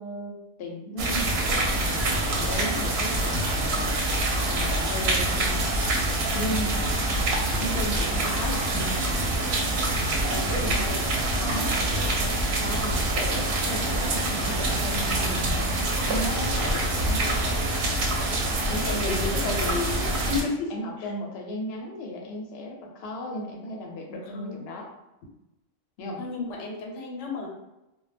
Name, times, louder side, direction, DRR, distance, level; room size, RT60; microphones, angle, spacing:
voice 1, 0.0-4.0 4.4-5.7 6.3-7.1 7.6-8.9 10.2-11.0 11.5-11.7 12.6-15.6 16.1-17.6 18.7-19.7 20.7-24.9 26.0-26.2, left 1 dB, 65° left, 1 dB, 0.7 m, -35 dB
sound 1, 1.0-20.4, right 1 dB, 65° right, 0.7 m, -26 dB
voice 2, 11.3-12.1 14.7-14.8 15.2-15.5 18.9-21.1 24.3-24.7 26.2-27.5, left 4 dB, 90° left, 0 dB, 1.0 m, -33 dB
2.1 x 2.0 x 3.2 m, 0.95 s
omnidirectional pair, 1.2 m